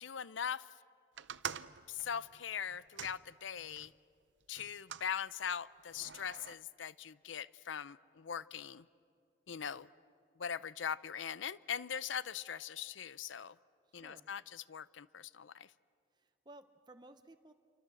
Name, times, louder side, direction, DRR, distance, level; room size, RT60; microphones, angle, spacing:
voice 1, 0.0-0.7 1.9-3.9 4.5-8.9 9.5-9.9 10.4-13.6 13.9-15.7, left 8 dB, 85° left, 18 dB, 0.6 m, -41 dB
sound 1, 1.2-3.9 4.6-5.1 5.9-6.5, right 7 dB, 75° right, 0.7 m, -46 dB
voice 2, 13.9-14.3 16.1-17.5, right 2 dB, 20° right, 7 dB, 0.8 m, -57 dB
28.0 x 25.0 x 7.7 m, 2.4 s
head